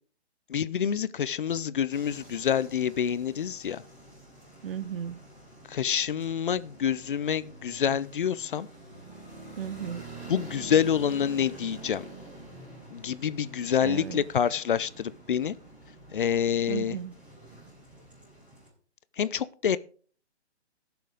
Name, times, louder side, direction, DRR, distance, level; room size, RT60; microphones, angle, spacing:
voice 1, 0.5-3.8 5.7-8.7 10.3-12.1 12.9-15.5 16.1-17.0 19.2-19.8, left 8 dB, 50° left, 0.5 m, -27 dB
sound 1, 1.9-18.7, right 2 dB, 5° right, 4.0 m, -47 dB
voice 2, 4.6-5.3 9.6-10.1 13.8-14.2 16.7-17.1, right 9 dB, 55° right, 0.8 m, -35 dB
18.0 x 6.9 x 3.9 m
hypercardioid pair, 155°, 34 cm